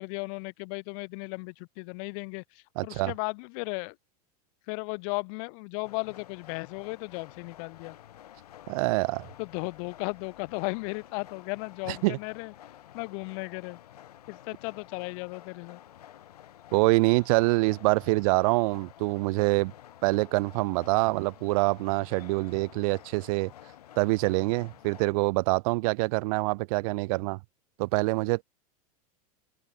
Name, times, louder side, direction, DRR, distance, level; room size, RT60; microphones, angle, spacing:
voice 1, 0.0-2.4 2.8-3.9 4.7-8.0 9.4-12.5 12.9-13.8 14.3-15.8, left 35 dB, 60° left, 1.1 m, -35 dB
voice 2, 2.8-3.1 8.7-9.3 11.9-12.2 16.7-19.7 20.0-23.5 24.0-27.4 27.8-28.4, right 25 dB, 65° right, 0.7 m, -25 dB
sound 1, 5.8-25.1, left 11 dB, 90° left, 7.3 m, -51 dB
hypercardioid pair, 110°, 20 cm